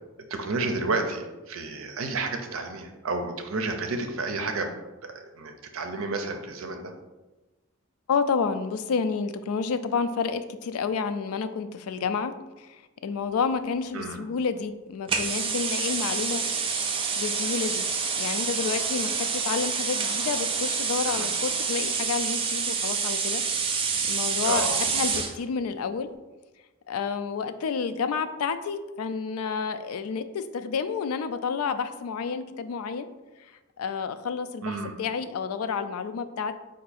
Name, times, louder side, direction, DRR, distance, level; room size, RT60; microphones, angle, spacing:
voice 1, 0.3-4.7 5.0-6.9 13.9-14.2 21.0-21.3 24.4-24.8 34.6-34.9, right 3 dB, 70° right, 5 dB, 0.6 m, -31 dB
voice 2, 8.1-16.5 17.2-17.9 18.2-23.4 24.1-26.1 26.9-33.1 33.4-33.5 33.8-36.5, left 5 dB, 90° left, 11 dB, 0.4 m, -30 dB
sound 1, 15.1-25.4, right 5 dB, 25° right, 0.4 m, -27 dB
4.6 x 2.6 x 4.1 m, 1.1 s
head